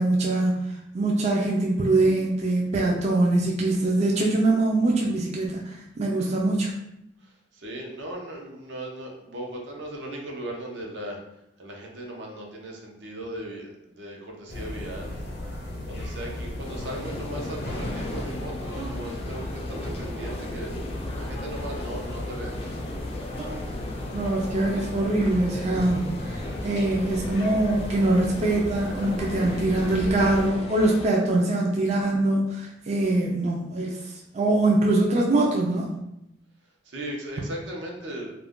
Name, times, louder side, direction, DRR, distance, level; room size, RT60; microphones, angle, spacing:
voice 1, 0.0-6.7 18.7-18.9 20.2-20.3 23.4-23.6 24.1-35.9, right 2 dB, 40° right, -2 dB, 0.4 m, -23 dB
voice 2, 7.2-11.2 11.6-15.2 15.9-20.7 21.2-22.6 36.8-38.3, right 1 dB, 80° right, -1 dB, 0.7 m, -37 dB
sound 1, 14.5-30.5, left 1 dB, 65° left, 0.7 m, -35 dB
sound 2, 16.6-31.1, left 2 dB, 35° left, 0.3 m, -37 dB
2.4 x 2.1 x 3.6 m, 0.85 s
head